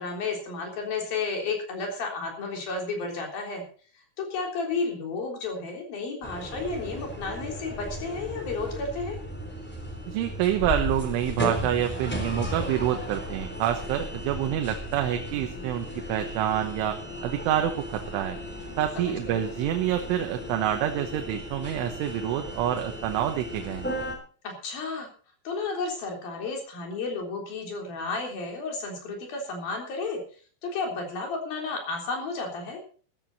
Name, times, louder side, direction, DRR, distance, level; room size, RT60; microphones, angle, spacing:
voice 1, 0.0-3.6 4.2-9.2 19.0-19.5 24.4-25.1 25.5-30.2 30.6-32.8, left 3 dB, 50° left, 1 dB, 5.2 m, -32 dB
sound 1, 6.2-24.1, left 1 dB, 5° left, 2.1 m, -36 dB
voice 2, 10.1-18.4 18.8-23.9, right 11 dB, 80° right, 5 dB, 3.6 m, -27 dB
14.0 x 14.0 x 4.1 m, 0.41 s
omnidirectional pair, 5.6 m